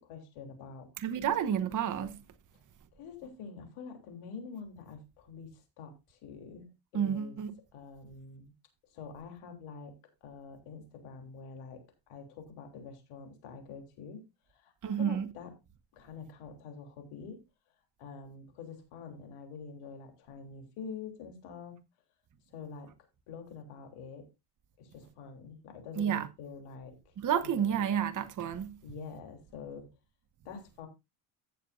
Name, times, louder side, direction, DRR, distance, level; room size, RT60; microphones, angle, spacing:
voice 1, 0.0-0.9 2.5-2.6 2.9-7.4 7.7-8.5 8.9-10.0 10.2-14.2 14.5-15.5 15.9-17.4 18.0-21.8 22.5-22.9 23.3-24.3 24.8-27.1 27.4-27.8 28.8-29.9 30.4-30.9, left 5 dB, 80° left, 3.4 m, -46 dB
voice 2, 1.0-2.2 6.9-7.5 14.8-15.3 26.0-26.3 27.2-28.8, right 8 dB, 40° right, 1.0 m, -30 dB
15.5 x 6.9 x 2.5 m
cardioid pair, 125°, 50 cm